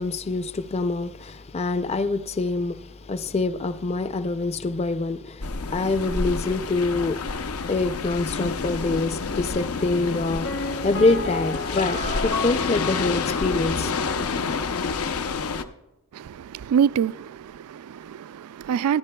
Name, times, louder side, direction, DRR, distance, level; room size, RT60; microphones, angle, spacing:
voice 1, 0.0-7.2 7.7-13.9 14.2-14.3, left 3 dB, 30° left, 0.4 m, -25 dB
sound 1, 5.4-15.6, left 4 dB, 75° left, 0.7 m, -28 dB
Piano, 10.4-14.2 14.5-14.6, left 2 dB, 55° left, 1.0 m, -32 dB
voice 2, 16.1-19.0, right 8 dB, 90° right, 0.3 m, -26 dB
27.5 x 10.5 x 2.3 m
head